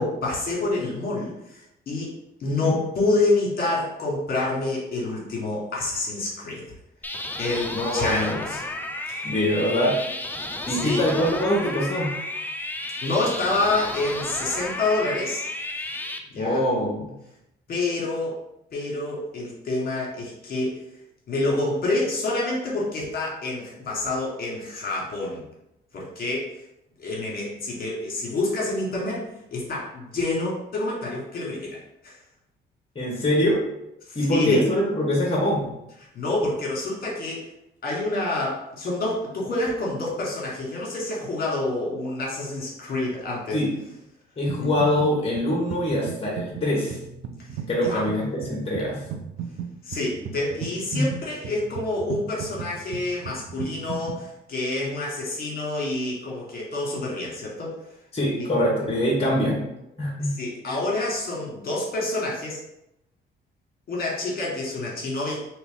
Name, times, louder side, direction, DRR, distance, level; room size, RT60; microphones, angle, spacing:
voice 1, 0.0-2.1 2.4-6.7 7.4-8.6 9.1-9.3 10.7-11.0 13.0-15.5 16.3-16.6 17.7-18.4 18.7-20.8 21.3-25.4 25.9-26.6 27.0-32.2 34.0-34.6 36.1-37.5 37.8-43.6 44.6-44.7 47.5-48.0 49.8-57.7 58.3-58.5 60.2-62.6 63.9-65.4, left 2 dB, 50° left, -4 dB, 1.4 m, -28 dB
sound 1, 7.0-16.2, left 2 dB, 10° left, 0.4 m, -33 dB
voice 2, 7.7-8.3 9.2-9.9 10.7-12.1 16.4-17.1 32.9-33.6 34.1-35.7 43.5-43.7 44.4-47.0 47.7-49.0 50.9-51.1 58.1-59.6 60.0-60.3, left 1 dB, 30° left, -4 dB, 1.0 m, -23 dB
sound 2, 44.5-45.1 45.4-54.2, right 8 dB, 75° right, 0.5 m, -36 dB
3.0 x 2.9 x 3.6 m, 0.85 s
cardioid pair, 90°, 20 cm